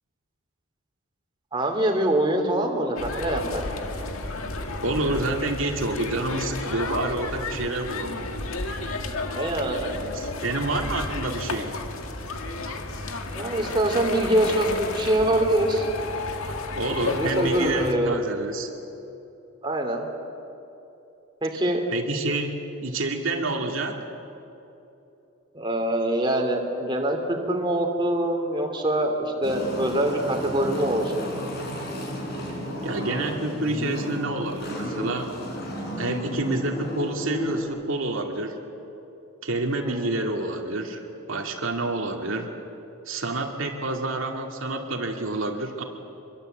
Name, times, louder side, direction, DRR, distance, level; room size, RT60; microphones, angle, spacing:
voice 1, 1.5-3.6 9.3-10.2 13.3-15.9 17.0-18.2 19.6-20.1 21.4-21.8 25.5-31.3 39.8-40.1, right 1 dB, 20° right, 2 dB, 2.9 m, -24 dB
sound 1, 3.0-17.9, left 3 dB, 80° left, 2.0 m, -32 dB
voice 2, 4.8-8.2 10.1-11.8 16.8-18.7 21.9-24.0 32.8-35.3 36.0-38.6 39.4-42.6 43.1-45.8, right 2 dB, 70° right, 2 dB, 2.3 m, -28 dB
sound 2, 29.4-37.6, equal, 50° left, 4.6 m, -32 dB
25.5 x 23.5 x 8.0 m, 2.9 s
head